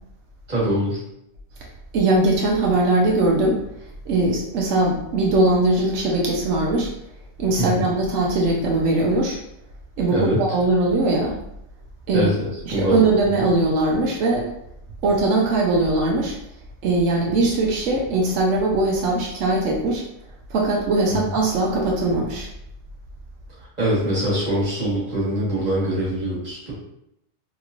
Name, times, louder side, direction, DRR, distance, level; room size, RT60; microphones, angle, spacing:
voice 1, 0.5-1.0 7.6-7.9 10.1-10.4 12.1-13.1 21.1-21.3 23.8-26.7, right 1 dB, 35° right, -7 dB, 1.4 m, -23 dB
voice 2, 1.9-3.6 4.1-6.9 7.4-9.4 10.0-11.4 12.1-12.3 12.7-14.5 15.0-16.4 16.8-20.0 20.5-22.5, right 2 dB, 85° right, -1 dB, 1.0 m, -20 dB
3.0 x 3.0 x 2.4 m, 0.78 s
omnidirectional pair, 1.2 m